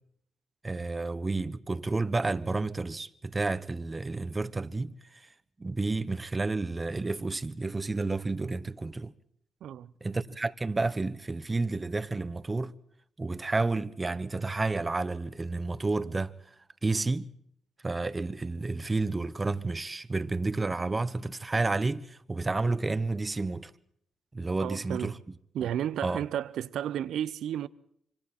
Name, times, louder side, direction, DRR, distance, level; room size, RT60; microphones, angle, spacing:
voice 1, 0.6-5.2 5.6-9.1 10.0-12.7 13.2-16.3 16.8-17.3 17.8-23.7 24.3-25.1 26.0-26.2, right 3 dB, 30° right, 1.2 m, -30 dB
voice 2, 9.6-9.9 24.6-25.2 25.5-27.7, right 10 dB, 75° right, 0.7 m, -32 dB
26.0 x 24.5 x 4.4 m
supercardioid pair, 50°, 0 cm